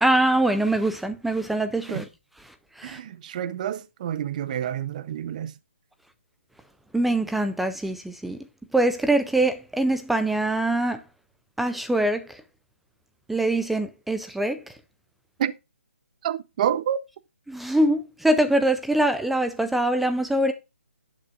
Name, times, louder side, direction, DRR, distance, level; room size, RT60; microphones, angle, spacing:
voice 1, 0.0-2.0 2.8-3.0 6.9-8.4 8.7-11.0 11.6-12.2 13.3-14.6 17.5-20.5, right 1 dB, ahead, 0.3 m, -23 dB
voice 2, 2.8-5.5 15.4-15.5 16.2-17.0, right 10 dB, 35° right, 0.6 m, -28 dB
11.0 x 7.3 x 2.4 m
hypercardioid pair, 150°, 7 cm